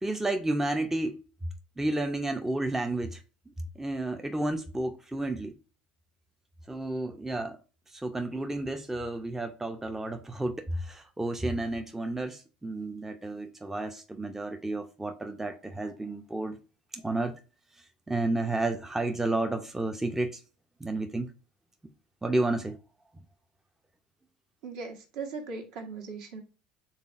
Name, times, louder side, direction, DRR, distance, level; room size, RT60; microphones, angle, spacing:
voice 1, 0.0-1.2 1.8-3.2 3.8-5.6 6.7-7.6 7.9-16.6 16.9-17.3 18.1-20.4 20.8-21.3 22.2-22.8, right 2 dB, 10° right, 0.5 m, -31 dB
voice 2, 24.6-26.4, right 4 dB, 65° right, 1.2 m, -39 dB
5.5 x 3.4 x 2.4 m
hypercardioid pair, 80°, 4 cm